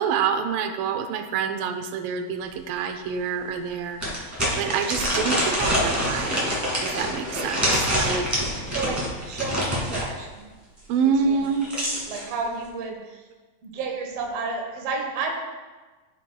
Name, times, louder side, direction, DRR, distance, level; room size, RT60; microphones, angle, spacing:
voice 1, 0.0-6.4 6.8-8.3 10.9-11.7, right 6 dB, 85° right, 7 dB, 2.3 m, -27 dB
sound 1, 2.5-2.6 3.1-3.2 4.0-10.1 11.3-12.2, equal, 15° right, 0.6 m, -26 dB
voice 2, 8.7-10.5 11.3-11.5 12.1-13.3 13.6-15.3, right 4 dB, 60° right, 1 dB, 1.7 m, -31 dB
12.5 x 5.7 x 2.2 m, 1.3 s
omnidirectional pair, 3.9 m